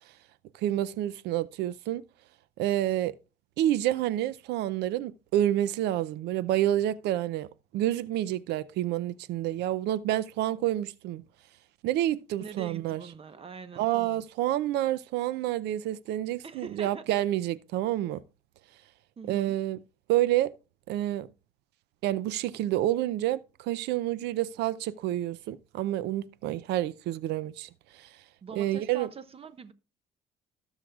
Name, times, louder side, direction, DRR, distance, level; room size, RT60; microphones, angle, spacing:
voice 1, 0.5-2.0 2.6-3.1 3.6-7.5 7.7-11.2 11.8-13.0 13.8-18.2 19.3-19.8 20.1-20.5 20.9-21.3 22.0-28.1 28.5-29.1, right 13 dB, 80° right, 0.5 m, -28 dB
voice 2, 12.4-14.2 16.4-17.1 19.2-19.6 28.4-29.7, right 5 dB, 35° right, 1.0 m, -43 dB
18.5 x 6.4 x 2.4 m
cardioid pair, 110°, 17 cm